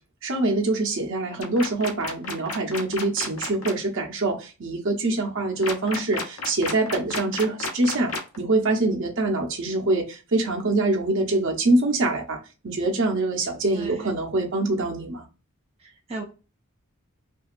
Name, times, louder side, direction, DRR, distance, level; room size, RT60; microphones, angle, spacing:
voice 1, 0.2-8.1 8.4-12.4 12.6-15.2, right 2 dB, 60° right, 0.9 m, -24 dB
sound 1, 1.4-3.7 5.6-8.4, left 3 dB, 80° left, 0.8 m, -31 dB
voice 2, 13.7-14.1 15.8-16.2, right 3 dB, 30° right, 0.5 m, -36 dB
2.8 x 2.7 x 2.4 m
head